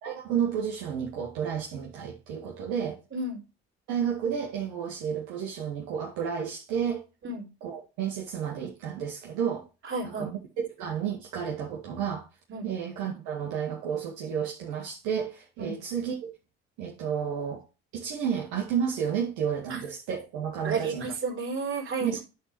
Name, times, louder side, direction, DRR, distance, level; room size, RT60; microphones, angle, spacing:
voice 1, 0.0-3.0 3.9-7.0 7.6-9.7 10.0-12.3 12.6-16.3 16.8-17.6 17.9-21.1 22.0-22.2, right 8 dB, 75° right, 2.0 m, -31 dB
voice 2, 9.8-10.3 12.5-12.7 15.6-15.8 19.7-19.8 20.6-22.2, right 3 dB, 40° right, 3.8 m, -32 dB
9.8 x 4.2 x 4.5 m
supercardioid pair, 70°, 30 cm